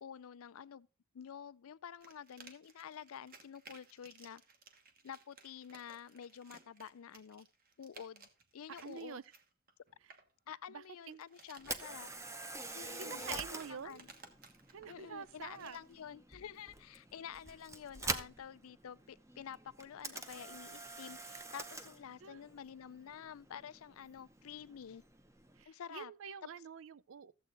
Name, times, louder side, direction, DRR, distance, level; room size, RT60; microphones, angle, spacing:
voice 1, 0.0-0.9 1.1-4.4 5.0-7.5 7.8-8.3 8.5-9.2 10.5-12.1 12.7-14.1 14.9-25.0 25.7-26.1, left 8 dB, 80° left, 0.4 m, -49 dB
sound 1, 2.0-10.3 10.9-16.0, right 4 dB, 40° right, 1.4 m, -60 dB
voice 2, 8.8-9.2 10.7-11.2 13.0-14.0 14.7-15.8 22.2-22.4 25.6-27.3, right 7 dB, 65° right, 0.4 m, -47 dB
Camera, 11.6-25.6, right 2 dB, 15° right, 0.7 m, -46 dB
14.0 x 7.8 x 3.9 m
head